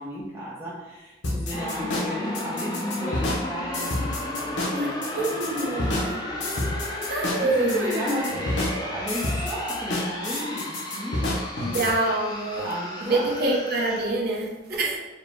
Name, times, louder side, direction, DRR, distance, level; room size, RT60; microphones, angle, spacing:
voice 1, 0.0-11.2 11.5-11.9 12.6-13.6 14.7-15.0, equal, 15° right, -9 dB, 0.7 m, -34 dB
sound 1, 1.2-11.9, left 1 dB, 70° left, 0.9 m, -29 dB
sound 2, 1.5-14.0, left 1 dB, 25° left, 0.6 m, -34 dB
voice 2, 5.2-6.2 7.1-8.3 11.7-12.7 13.0-15.0, right 2 dB, 60° right, -1 dB, 0.9 m, -26 dB
4.9 x 2.2 x 3.4 m, 1.1 s
head